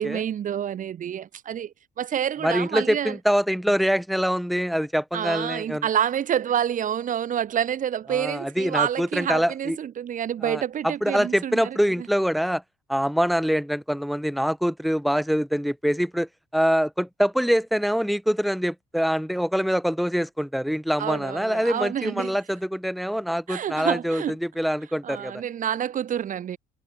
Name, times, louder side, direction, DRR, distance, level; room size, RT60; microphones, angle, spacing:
voice 1, 0.0-3.2 5.1-12.1 21.0-22.4 23.5-24.4 25.0-26.6, right 9 dB, 50° right, 3.0 m, -28 dB
voice 2, 2.4-5.9 8.1-9.8 10.4-12.6 12.9-25.4, equal, ahead, 2.4 m, -24 dB
cardioid pair, 110°, 17 cm